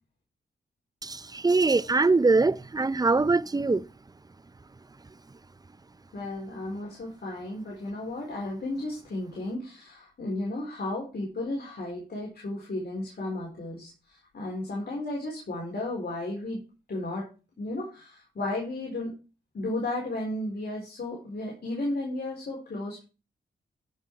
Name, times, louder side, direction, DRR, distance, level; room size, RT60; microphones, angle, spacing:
voice 1, 1.0-3.8, right 3 dB, 20° right, 0.6 m, -23 dB
voice 2, 6.1-16.6 16.9-17.3 17.6-19.1 19.5-23.0, left 2 dB, 55° left, 4.2 m, -34 dB
14.0 x 5.8 x 4.7 m
supercardioid pair, 45°, 20 cm